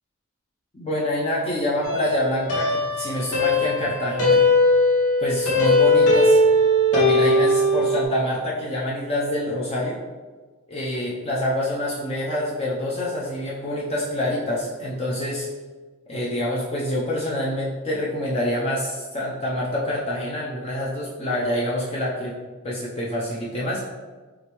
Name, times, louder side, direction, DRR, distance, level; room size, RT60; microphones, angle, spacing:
voice 1, 0.7-4.4 5.2-6.4 6.9-10.0 10.7-15.5 16.1-22.3 22.6-23.8, left 1 dB, 25° left, -6 dB, 0.5 m, -26 dB
sound 1, 1.8-8.0, left 1 dB, 85° left, 1.1 m, -19 dB
4.8 x 2.9 x 3.0 m, 1.3 s
head